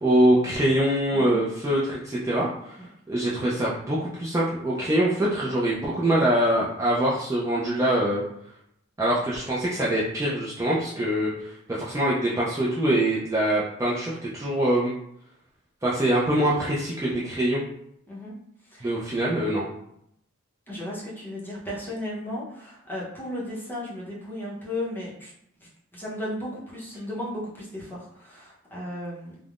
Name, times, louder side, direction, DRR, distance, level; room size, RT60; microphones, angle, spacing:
voice 1, 0.0-2.8 3.1-8.2 9.0-14.9 15.8-17.6 18.8-19.7, right 1 dB, 15° right, -7 dB, 0.4 m, -24 dB
voice 2, 18.6-18.9 20.7-25.3 25.6-29.4, left 1 dB, 10° left, -6 dB, 0.7 m, -35 dB
3.4 x 2.0 x 2.4 m, 0.73 s
head